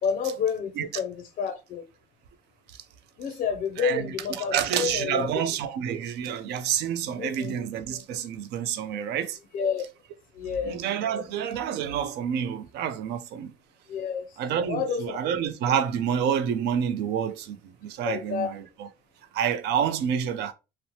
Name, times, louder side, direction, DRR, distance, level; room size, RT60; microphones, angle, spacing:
voice 1, 0.0-1.9 3.2-5.3 7.2-7.5 9.5-9.9 10.3-10.8 13.9-14.4 14.7-15.2 18.0-18.6, left 6 dB, 50° left, 0.4 m, -29 dB
voice 2, 3.8-9.4 10.6-13.5 14.4-18.6 19.3-20.5, right 8 dB, 80° right, 0.4 m, -28 dB
2.9 x 2.0 x 2.7 m
cardioid pair, 110°, 17 cm